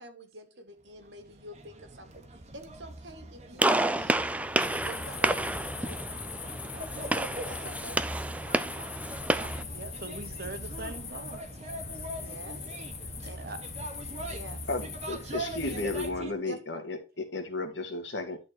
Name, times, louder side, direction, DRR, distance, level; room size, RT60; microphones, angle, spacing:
voice 1, 0.0-4.2 4.8-6.1 7.5-8.0 9.4-9.7 12.2-12.6 13.3-13.4 14.3-14.6 16.4-16.6, right 1 dB, 75° right, 1.8 m, -47 dB
sound 1, 0.9-16.3, right 1 dB, 35° right, 1.4 m, -43 dB
Gunshot gunfire, 3.6-9.6, right 1 dB, 10° right, 0.5 m, -30 dB
sound 2, 4.6-16.1, left 5 dB, 35° left, 1.5 m, -41 dB
voice 2, 6.4-7.2 8.6-8.8 9.7-11.4 11.9-12.3 13.0-13.6, right 2 dB, 55° right, 1.3 m, -44 dB
voice 3, 14.7-18.4, left 2 dB, 70° left, 2.0 m, -34 dB
11.0 x 4.3 x 4.8 m
head